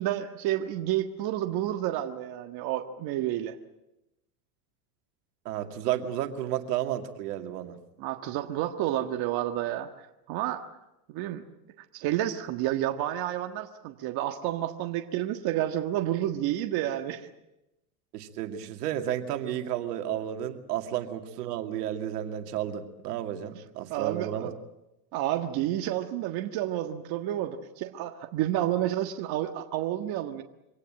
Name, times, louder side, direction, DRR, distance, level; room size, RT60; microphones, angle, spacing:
voice 1, 0.0-3.5 8.0-10.6 11.1-11.4 11.9-17.3 23.9-24.5 25.1-30.4, right 13 dB, 50° right, 5 dB, 1.6 m, -30 dB
voice 2, 5.4-7.8 18.1-24.5, right 11 dB, 80° right, 6 dB, 2.5 m, -32 dB
25.0 x 18.0 x 8.8 m, 0.93 s
supercardioid pair, 115°, 47 cm